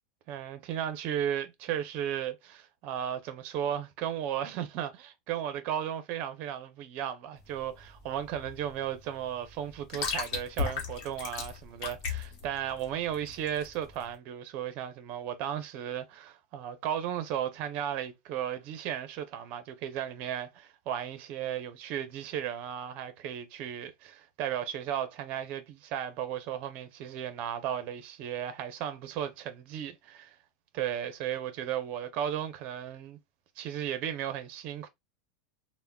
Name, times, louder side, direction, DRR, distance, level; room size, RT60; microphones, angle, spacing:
voice 1, 0.3-30.4 30.7-33.2 33.6-34.9, right 10 dB, 40° right, 0.6 m, -35 dB
sound 1, 7.4-14.1, left 5 dB, 45° left, 1.1 m, -37 dB
3.4 x 2.1 x 2.2 m
supercardioid pair, 150°, 4 cm